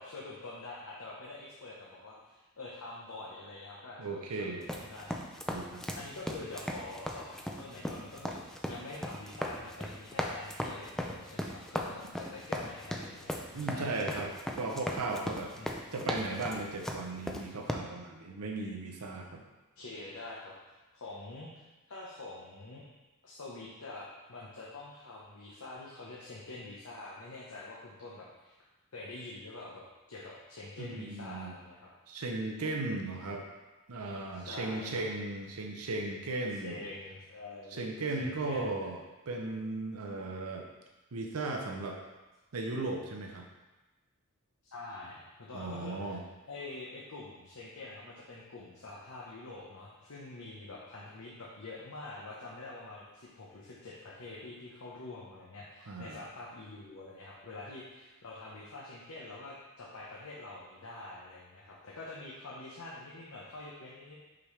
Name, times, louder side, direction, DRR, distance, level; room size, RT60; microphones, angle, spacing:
voice 1, 0.0-5.3 6.0-14.3 15.5-15.7 19.8-22.8 23.2-28.5 28.9-31.9 34.3-35.0 36.6-37.8 38.2-38.9 44.6-46.2 46.5-64.2, left 2 dB, 75° left, -5 dB, 0.9 m, -46 dB
voice 2, 4.0-4.7 5.5-5.8 13.5-14.3 14.6-15.5 15.9-19.4 30.8-31.6 32.1-33.4 33.9-36.8 37.7-40.7 41.1-42.0 42.5-43.5 45.5-46.2 55.9-56.2, right 2 dB, 85° right, 1 dB, 0.7 m, -36 dB
sound 1, 4.6-17.7, equal, ahead, 0.4 m, -38 dB
6.0 x 5.1 x 3.2 m, 1.1 s
head